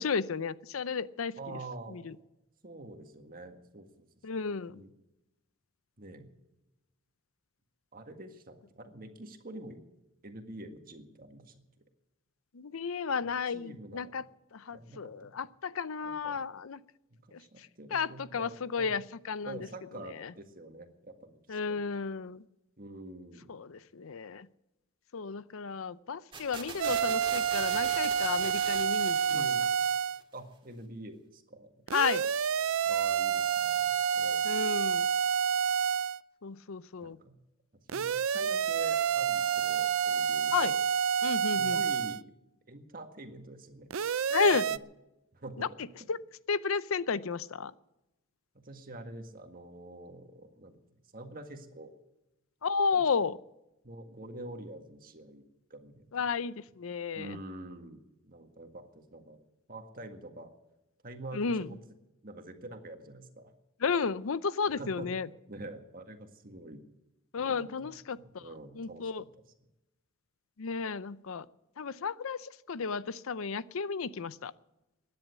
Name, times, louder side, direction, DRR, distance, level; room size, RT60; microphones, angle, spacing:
voice 1, 0.0-1.4 1.9-2.1 4.2-4.8 12.5-14.2 14.5-16.8 17.3-19.6 20.2-20.3 21.5-22.4 23.5-24.5 25.1-29.5 31.9-32.3 34.4-35.1 36.4-37.2 40.5-40.7 41.2-41.8 44.3-44.7 45.6-45.7 46.1-46.2 46.5-47.7 52.6-53.4 56.1-57.4 61.3-61.7 63.8-65.3 67.3-68.4 68.8-69.2 70.6-71.4 71.8-74.5, left 5 dB, 75° left, 17 dB, 0.6 m, -33 dB
voice 2, 1.4-2.0 2.6-4.1 4.7-4.9 6.0-6.3 7.9-9.8 10.2-11.6 13.5-14.3 14.7-15.4 16.0-16.4 17.1-19.0 19.4-22.0 22.8-23.5 29.3-29.7 30.3-31.7 32.8-34.7 37.0-37.4 37.9-40.8 41.4-42.2 42.7-43.9 44.4-44.8 45.3-45.7 48.5-50.8 51.1-51.9 52.9-53.1 53.8-55.5 55.7-56.2 57.1-59.4 59.7-60.5 61.0-61.8 62.2-63.5 64.7-65.1 65.5-66.8 67.4-69.2, right 1 dB, 40° right, 6 dB, 1.8 m, -46 dB
sound 1, 26.3-30.2, right 4 dB, 25° right, 2.0 m, -43 dB
sound 2, 26.8-30.2 31.9-36.2 37.9-42.2 43.9-44.8, right 7 dB, 75° right, 0.5 m, -29 dB
16.5 x 10.5 x 8.3 m, 0.94 s
head